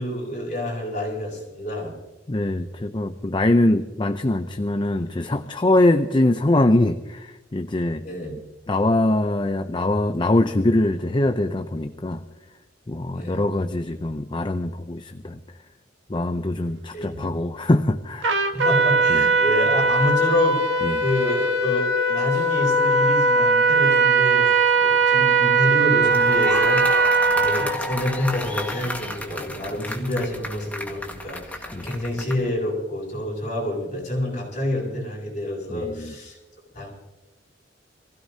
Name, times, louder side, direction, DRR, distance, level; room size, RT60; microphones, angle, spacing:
voice 1, 0.0-1.9 8.0-8.3 13.0-13.4 16.9-17.3 18.5-36.4 36.7-36.9, left 1 dB, 45° left, -3 dB, 7.6 m, -28 dB
voice 2, 2.3-8.0 8.7-12.2 12.9-15.4 16.1-18.4 19.1-19.3 20.8-21.0 31.7-31.9 35.7-36.1, left 1 dB, 25° left, 8 dB, 0.6 m, -22 dB
Trumpet, 18.2-27.8, right 3 dB, 75° right, 1.7 m, -19 dB
sound 1, 25.8-32.5, left 1 dB, 10° left, 1.8 m, -32 dB
27.0 x 16.5 x 2.8 m, 1.1 s
head